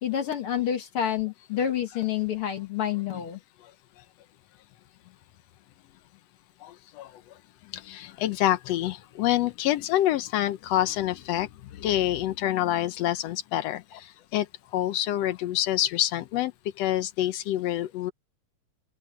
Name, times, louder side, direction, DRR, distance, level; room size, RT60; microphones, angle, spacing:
voice 1, 0.0-3.4, left 9 dB, 55° left, 1.9 m, -28 dB
voice 2, 7.9-11.5 11.8-13.8 14.3-14.5 14.7-16.5 16.8-18.1, left 13 dB, 70° left, 1.7 m, -26 dB
omnidirectional pair, 3.5 m